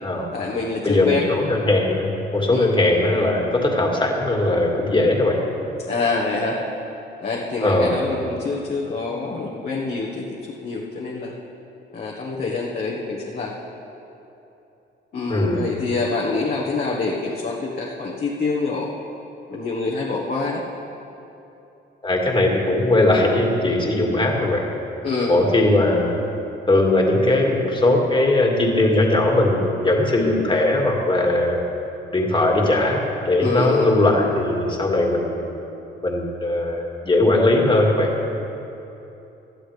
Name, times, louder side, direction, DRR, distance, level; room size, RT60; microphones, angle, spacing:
voice 1, 0.3-1.3 2.5-2.7 5.9-6.6 7.2-11.3 11.9-13.5 15.1-18.9 19.5-20.6 25.0-25.3 33.4-33.9, left 3 dB, 50° left, -4 dB, 1.6 m, -26 dB
voice 2, 0.8-5.4 7.6-8.0 15.3-15.6 22.0-24.6 25.3-26.1 26.7-31.6 32.1-35.4 36.0-38.1, left 2 dB, 25° left, 0 dB, 2.2 m, -19 dB
19.0 x 12.0 x 3.4 m, 3.0 s
cardioid pair, 90°, 20 cm